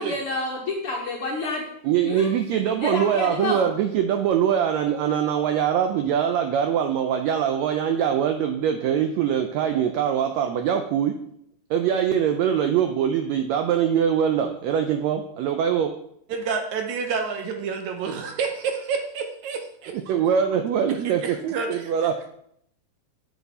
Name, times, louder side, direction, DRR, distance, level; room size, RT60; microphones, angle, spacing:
voice 1, 0.0-1.7 2.0-2.3 2.8-3.6, left 2 dB, 60° left, -2 dB, 1.6 m, -28 dB
voice 2, 1.8-11.1 11.7-15.9 19.9-21.4 21.7-22.3, right 8 dB, 90° right, 6 dB, 1.5 m, -23 dB
voice 3, 16.3-20.2 21.0-21.8, right 5 dB, 75° right, 5 dB, 1.9 m, -29 dB
7.4 x 6.0 x 4.1 m, 0.70 s
omnidirectional pair, 3.7 m